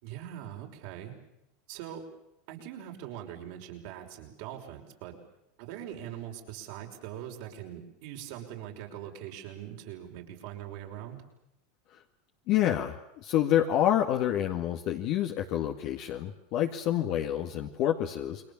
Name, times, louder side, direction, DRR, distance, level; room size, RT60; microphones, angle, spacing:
voice 1, 0.0-1.2 1.7-2.0 2.5-5.2 5.6-11.2, right 11 dB, 65° right, 2 dB, 5.8 m, -42 dB
voice 2, 12.5-18.4, left 11 dB, 55° left, 3 dB, 1.9 m, -28 dB
29.0 x 22.5 x 7.3 m, 0.85 s
hypercardioid pair, 105°, 0 cm